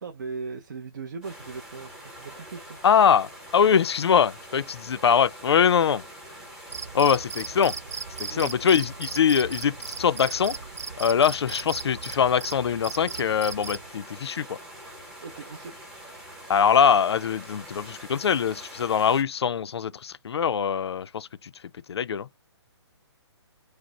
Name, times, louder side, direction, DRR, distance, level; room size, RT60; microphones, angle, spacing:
voice 1, 0.0-2.8 8.3-8.8 15.2-15.8, right 4 dB, 45° right, 0.5 m, -38 dB
sound 1, 1.2-19.2, right 1 dB, 5° right, 0.7 m, -45 dB
voice 2, 2.8-6.0 6.9-7.7 8.2-10.6 11.0-14.6 16.5-21.3 21.9-22.3, left 7 dB, 65° left, 0.4 m, -23 dB
Cricket, 6.7-13.9, right 5 dB, 90° right, 0.6 m, -37 dB
5.0 x 2.0 x 4.1 m
hypercardioid pair, 170°, 14 cm